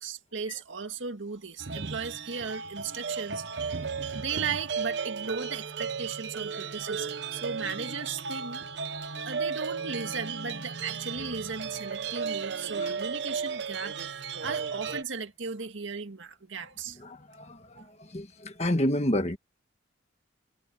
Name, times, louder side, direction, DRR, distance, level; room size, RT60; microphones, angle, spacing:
voice 1, 0.0-3.9 4.1-8.6 9.3-14.0 14.4-17.0 17.8-17.9, right 5 dB, 80° right, 1.9 m, -36 dB
sound 1, 1.6-15.0, right 5 dB, 60° right, 0.8 m, -34 dB
voice 2, 17.0-17.8 18.1-19.4, left 1 dB, 35° left, 1.6 m, -29 dB
head